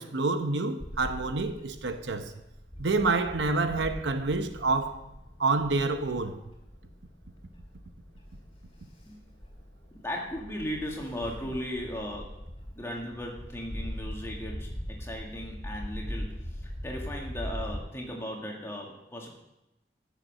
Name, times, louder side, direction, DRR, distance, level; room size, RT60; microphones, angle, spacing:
voice 1, 0.0-2.3 2.8-5.0 5.4-6.4, right 3 dB, 80° right, 0.8 m, -28 dB
Bird / Wind, 0.8-17.8, equal, 30° left, 2.8 m, -41 dB
voice 2, 9.9-12.4 12.8-19.3, equal, 15° left, 2.0 m, -37 dB
14.0 x 6.9 x 6.3 m
head